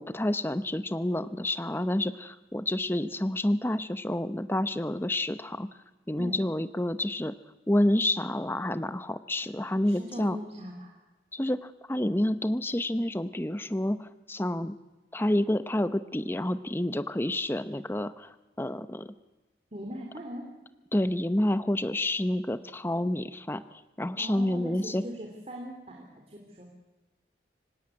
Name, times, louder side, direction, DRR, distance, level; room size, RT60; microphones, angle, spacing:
voice 1, 0.0-5.7 6.1-7.3 7.7-10.4 11.3-14.8 15.1-19.1 20.9-25.0, left 1 dB, 10° left, 12 dB, 0.7 m, -29 dB
voice 2, 9.8-10.9 19.7-20.5 24.2-26.7, equal, 35° right, 1 dB, 3.3 m, -40 dB
25.0 x 18.0 x 9.7 m, 1.1 s
head